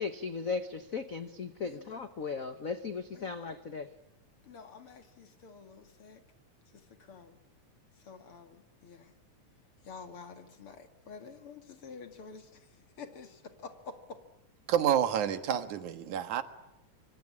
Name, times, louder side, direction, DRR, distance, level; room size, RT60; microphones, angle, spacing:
voice 1, 0.0-3.9, left 5 dB, 70° left, 0.8 m, -37 dB
voice 2, 1.6-1.9 3.1-3.3 4.4-6.2 6.7-7.4 8.0-9.1 9.8-14.2, left 5 dB, 50° left, 2.9 m, -49 dB
voice 3, 14.7-16.4, right 9 dB, 90° right, 3.0 m, -28 dB
26.5 x 25.5 x 8.7 m
omnidirectional pair, 3.3 m